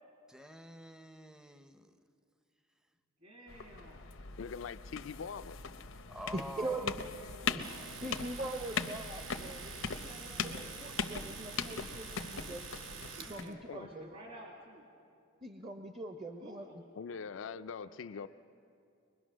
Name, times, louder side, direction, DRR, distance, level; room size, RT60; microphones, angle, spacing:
voice 1, 0.3-2.0 6.1-6.9, right 1 dB, 5° right, 9 dB, 0.6 m, -47 dB
voice 2, 3.2-4.0 6.6-8.0 9.7-10.7 13.2-14.8 16.4-16.7 17.1-18.3, right 1 dB, 50° right, -1 dB, 2.2 m, -53 dB
sound 1, 3.5-13.4, left 5 dB, 90° left, 0.8 m, -40 dB
voice 3, 4.4-5.6 13.7-13.9 17.0-18.3, left 6 dB, 75° left, 11 dB, 0.4 m, -42 dB
voice 4, 6.3-6.9 7.4-7.7 8.0-9.8 10.8-12.7 13.2-14.2 15.4-16.8, right 2 dB, 30° right, 6 dB, 0.8 m, -41 dB
Domestic sounds home sounds, 7.6-13.5, right 6 dB, 75° right, 1.1 m, -47 dB
23.0 x 20.5 x 6.2 m, 2.5 s
head